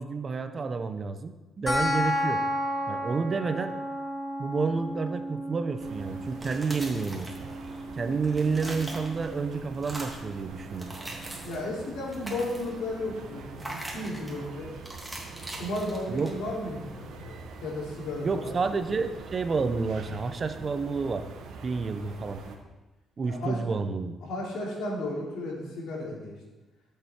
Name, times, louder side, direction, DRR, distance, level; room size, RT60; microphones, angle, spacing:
voice 1, 0.0-2.4 2.9-3.8 4.4-7.3 8.0-10.9 16.1-16.3 18.2-21.3 21.6-22.4 23.2-24.2, right 4 dB, 40° right, 9 dB, 0.9 m, -30 dB
sound 1, 1.7-12.6, equal, 30° left, 2.3 m, -34 dB
sound 2, 5.8-22.6, right 4 dB, 80° right, 1.4 m, -44 dB
sound 3, 6.3-7.8 8.1-9.4 9.7-10.3 10.7-11.7 12.0-12.8 13.6-14.4 14.9-16.6, right 1 dB, 5° right, 2.5 m, -41 dB
voice 2, 11.4-14.7 15.5-18.6 23.2-23.6 24.2-26.4, left 1 dB, 80° left, -3 dB, 3.2 m, -34 dB
13.0 x 6.9 x 4.6 m, 1.1 s
cardioid pair, 90°, 0 cm